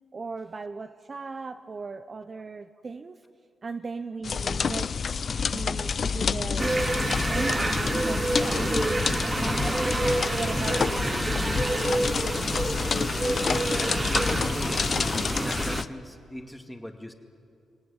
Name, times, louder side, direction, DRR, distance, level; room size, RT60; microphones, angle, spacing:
voice 1, 0.1-3.2 3.6-5.0 5.5-6.7 7.3-10.0 10.4-11.0, right 4 dB, 35° right, 9 dB, 0.8 m, -37 dB
sound 1, 4.2-15.9, left 6 dB, 50° left, 0.6 m, -28 dB
sound 2, 6.6-15.8, right 2 dB, 20° right, 1.1 m, -28 dB
voice 2, 13.7-15.0 15.4-17.1, equal, 5° left, 5 dB, 2.3 m, -40 dB
25.5 x 18.5 x 10.0 m, 2.5 s
cardioid pair, 90°, 0 cm